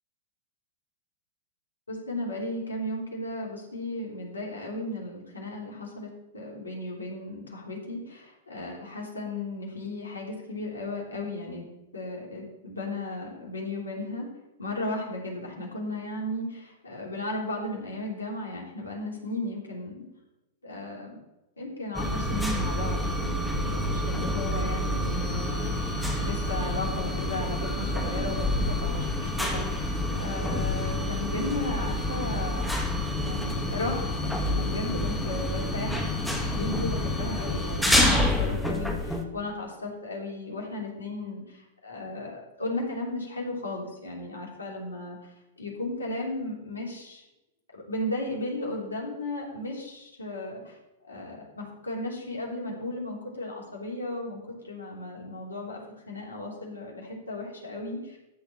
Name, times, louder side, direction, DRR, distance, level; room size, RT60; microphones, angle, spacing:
voice 1, 1.9-11.6 11.9-14.3 14.6-20.0 20.6-21.2 21.6-25.7 26.2-32.8 33.2-47.2 47.7-50.8 51.1-55.8 56.1-58.2, left 2 dB, 85° left, -2 dB, 3.1 m, -35 dB
sound 1, 21.9-39.2, left 1 dB, ahead, 1.5 m, -28 dB
13.0 x 4.4 x 7.0 m, 0.96 s
figure-of-eight pair, 100°, 0 cm